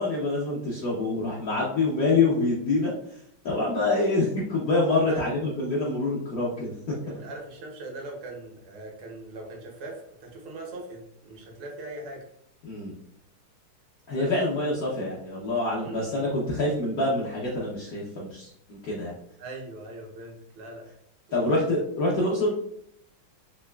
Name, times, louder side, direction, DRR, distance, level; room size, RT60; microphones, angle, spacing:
voice 1, 0.0-2.9 3.4-6.7 7.1-7.2 12.6-12.9 14.1-19.1 21.3-22.5, left 2 dB, 65° left, -6 dB, 0.9 m, -26 dB
voice 2, 7.0-12.3 14.1-14.3 15.8-16.3 19.4-20.9 21.5-21.6 22.0-22.2, right 2 dB, 75° right, 0 dB, 1.7 m, -40 dB
3.9 x 3.0 x 2.2 m, 0.72 s
omnidirectional pair, 2.4 m